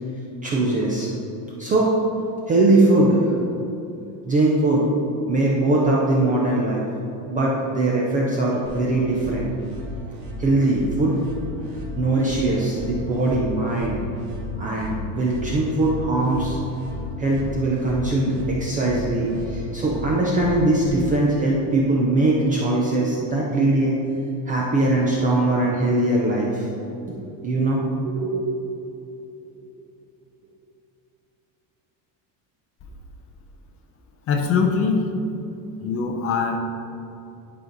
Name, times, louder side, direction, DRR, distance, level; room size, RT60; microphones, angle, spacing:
voice 1, 0.4-1.1 1.6-1.9 2.5-3.3 4.3-4.9 5.3-6.8 7.3-9.5 10.4-11.2 12.0-14.0 14.6-16.6 17.2-24.0 24.5-26.7 27.0-27.2 27.4-28.9 29.5-29.6, right 2 dB, 20° right, -3 dB, 0.4 m, -21 dB
sound 1, 8.6-20.9, left 1 dB, 65° right, 1.9 m, -34 dB
voice 2, 34.3-35.1 35.8-36.6, left 5 dB, 30° left, 2 dB, 0.6 m, -22 dB
11.0 x 5.1 x 3.9 m, 2.7 s
cardioid pair, 175°, 45 cm